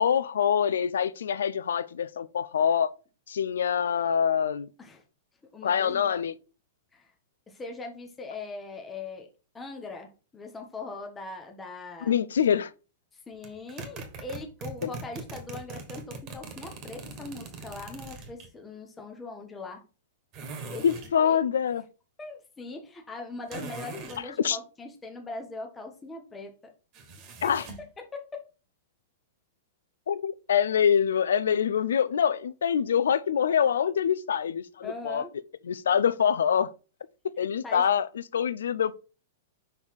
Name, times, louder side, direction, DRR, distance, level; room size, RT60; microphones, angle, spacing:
voice 1, 0.0-2.9 3.3-4.7 5.6-6.3 12.1-12.7 14.8-14.9 20.8-21.8 24.4-24.6 27.4-27.6 30.1-35.2 35.7-36.7 37.4-38.1 38.3-38.9, left 8 dB, 90° left, 0.3 m, -25 dB
voice 2, 5.5-6.3 6.9-7.1 7.5-12.2 13.1-19.8 20.7-20.9 21.2-21.4 22.2-26.7 27.4-27.5 27.8-28.4 34.8-35.3 37.6-37.9, left 3 dB, 15° left, 0.9 m, -41 dB
sound 1, 13.4-18.5 20.3-21.2 23.5-24.2 26.9-27.9, right 3 dB, 35° right, 1.5 m, -41 dB
5.4 x 3.9 x 4.7 m
hypercardioid pair, 140°, 0 cm